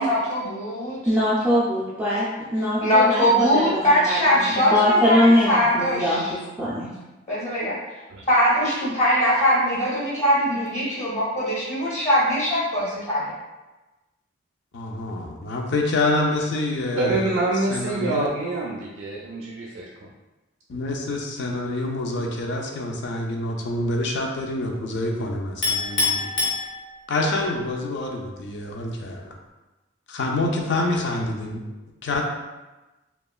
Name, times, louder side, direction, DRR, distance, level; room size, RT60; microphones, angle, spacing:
voice 1, 0.0-1.0 2.8-5.2 5.5-6.3 7.3-7.7 8.3-13.3, equal, 35° left, -7 dB, 0.7 m, -21 dB
voice 2, 1.1-2.2 2.5-6.9, equal, 10° right, -10 dB, 0.3 m, -22 dB
voice 3, 14.7-17.3 17.7-18.3 20.7-26.3 27.1-29.2 30.1-31.6 32.0-32.2, left 2 dB, 60° left, 1 dB, 0.4 m, -26 dB
voice 4, 17.0-19.9, right 2 dB, 90° right, -2 dB, 0.3 m, -26 dB
Chink clink, 25.6-27.3, left 4 dB, 85° left, 0.8 m, -25 dB
2.8 x 2.3 x 2.3 m, 1.1 s
head